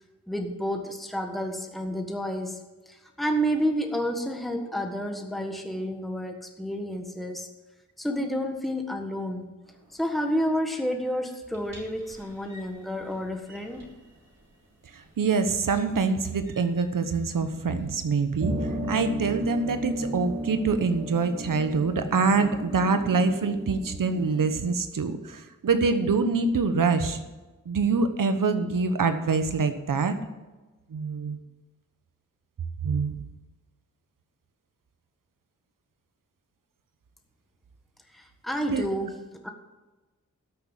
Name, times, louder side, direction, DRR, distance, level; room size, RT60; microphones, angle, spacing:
voice 1, 0.3-2.6 2.9-7.5 8.0-9.5 9.9-13.9 38.1-39.5, equal, ahead, 3 dB, 1.5 m, -30 dB
sound 1, 11.4-14.0 15.0-15.1 15.7-15.8 16.5-16.8 17.7-17.9 18.2-24.6, equal, 55° right, 3.1 m, -36 dB
voice 2, 14.9-18.5 18.9-27.2 27.7-30.2 30.9-31.4 32.8-33.2 38.7-38.8, right 4 dB, 80° right, 9 dB, 1.2 m, -25 dB
13.0 x 6.6 x 7.4 m, 1.2 s
cardioid pair, 50°, 32 cm